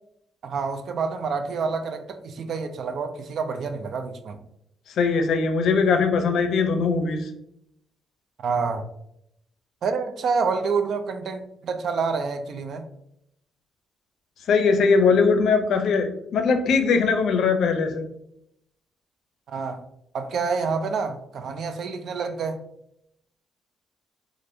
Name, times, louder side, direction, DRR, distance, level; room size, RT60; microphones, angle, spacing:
voice 1, 0.4-4.4 8.4-8.8 9.8-12.9 19.5-19.8 20.1-22.6, right 5 dB, 65° right, 7 dB, 0.4 m, -28 dB
voice 2, 4.9-7.3 14.5-18.1, left 5 dB, 70° left, 6 dB, 0.5 m, -21 dB
3.3 x 2.5 x 2.6 m, 0.77 s
cardioid pair, 90°, 0 cm